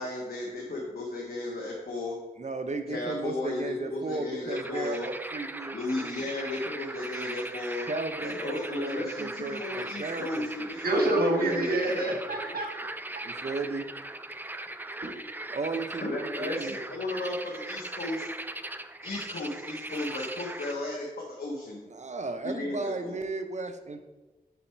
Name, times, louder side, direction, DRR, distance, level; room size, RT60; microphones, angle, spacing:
voice 1, 0.0-2.2 2.9-5.1 5.7-7.9 8.2-11.0 11.4-12.1 16.0-18.3 19.0-21.8 22.4-23.2, left 2 dB, 80° left, -2 dB, 1.1 m, -35 dB
voice 2, 2.4-6.3 7.9-10.7 13.2-13.9 15.5-16.8 21.9-24.0, right 3 dB, 50° right, 7 dB, 0.7 m, -35 dB
sound 1, 4.5-20.7, right 2 dB, 10° right, 0.4 m, -39 dB
voice 3, 10.8-12.9 15.0-15.2, right 1 dB, 80° right, 0 dB, 1.4 m, -27 dB
8.2 x 4.1 x 4.5 m, 1.2 s
wide cardioid pair, 85°, 16 cm